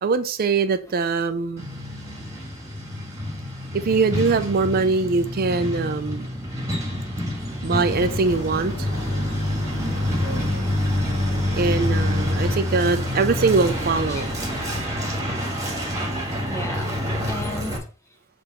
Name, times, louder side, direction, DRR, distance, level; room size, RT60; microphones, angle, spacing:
voice 1, 0.0-1.7 3.7-6.3 7.6-8.9 11.5-14.3, right 4 dB, 45° right, 0.4 m, -22 dB
Truck, 1.6-17.8, left 1 dB, 15° right, 1.6 m, -27 dB
sound 1, 7.7-14.8, left 1 dB, 70° left, 1.1 m, -38 dB
voice 2, 10.5-10.8 12.5-12.6 14.1-14.3 16.4-17.0 17.3-17.8, equal, 15° left, 0.6 m, -35 dB
6.8 x 3.4 x 4.2 m
head